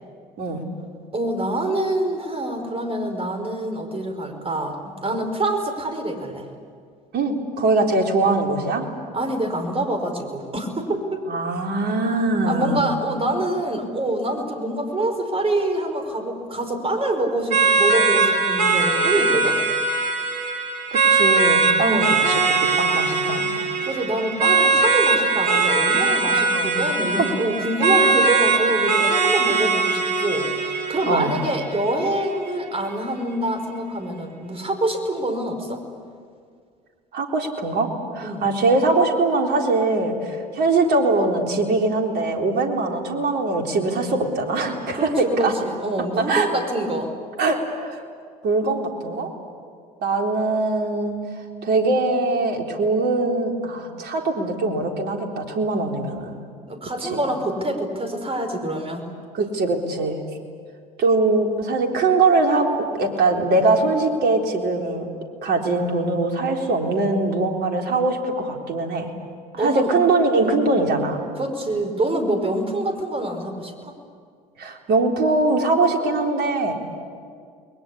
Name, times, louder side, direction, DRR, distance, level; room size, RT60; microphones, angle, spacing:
voice 1, 1.1-6.5 9.1-11.2 12.5-19.6 21.8-22.2 23.8-35.8 38.2-38.5 44.9-47.1 56.7-59.0 69.5-69.9 71.3-73.9, right 1 dB, 25° right, 5 dB, 5.3 m, -25 dB
voice 2, 7.1-8.8 11.3-12.9 20.9-22.4 22.8-23.6 26.5-27.3 31.1-31.4 37.1-37.9 38.1-45.5 46.2-46.5 47.4-48.0 48.4-49.3 50.0-51.2 51.6-56.4 57.0-57.3 59.3-60.2 61.0-65.1 65.4-69.1 69.5-71.2 74.6-76.7, right 3 dB, 50° right, 3 dB, 3.9 m, -22 dB
sound 1, 17.5-32.5, right 4 dB, 80° right, 2.8 m, -21 dB
29.5 x 21.5 x 8.7 m, 2.1 s
figure-of-eight pair, 60°, 21 cm